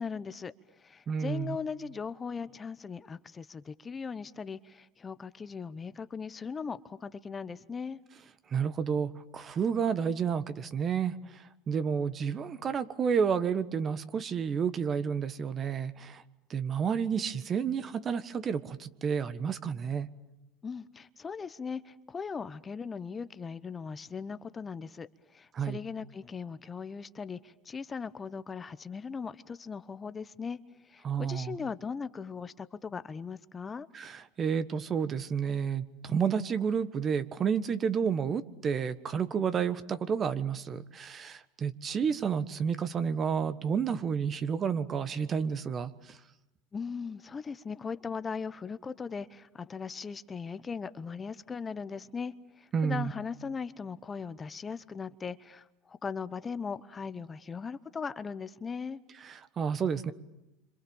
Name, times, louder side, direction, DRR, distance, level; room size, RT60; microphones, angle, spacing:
voice 1, 0.0-8.0 20.6-30.6 30.9-33.9 46.7-59.0, left 5 dB, 25° left, 0.9 m, -39 dB
voice 2, 1.1-1.6 8.5-11.1 11.7-16.2 16.5-20.1 25.5-25.8 31.0-31.5 33.9-45.9 52.7-53.1 59.2-60.1, right 7 dB, 35° right, 1.4 m, -30 dB
28.5 x 26.0 x 7.2 m
hypercardioid pair, 90°, 0 cm